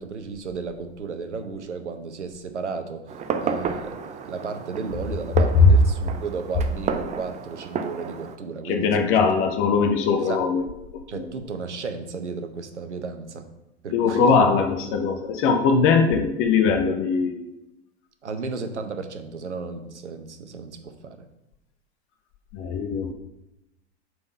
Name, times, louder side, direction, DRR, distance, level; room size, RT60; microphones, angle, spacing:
voice 1, 0.0-4.0 4.2-9.2 10.2-10.4 11.1-13.5 13.8-14.4 18.2-21.2, right 4 dB, 85° right, 7 dB, 0.8 m, -34 dB
Fireworks, 3.1-8.4, right 6 dB, 20° right, 0.5 m, -31 dB
voice 2, 8.6-10.6 11.1-11.3 13.9-17.4 22.5-23.1, left 5 dB, 40° left, 5 dB, 0.7 m, -20 dB
5.3 x 4.5 x 5.3 m, 0.92 s
figure-of-eight pair, 90°, 34 cm